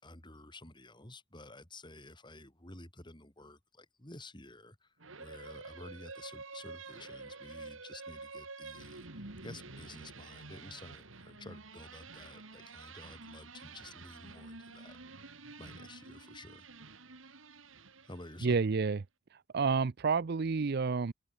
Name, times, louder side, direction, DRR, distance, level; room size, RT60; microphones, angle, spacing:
voice 1, 0.0-15.2 15.6-16.7 18.0-18.6, left 2 dB, 25° left, 5.5 m, -51 dB
sound 1, 5.0-18.6, right 3 dB, 85° right, 2.7 m, -49 dB
voice 2, 18.4-19.0 19.5-21.1, right 5 dB, 55° right, 0.5 m, -29 dB
head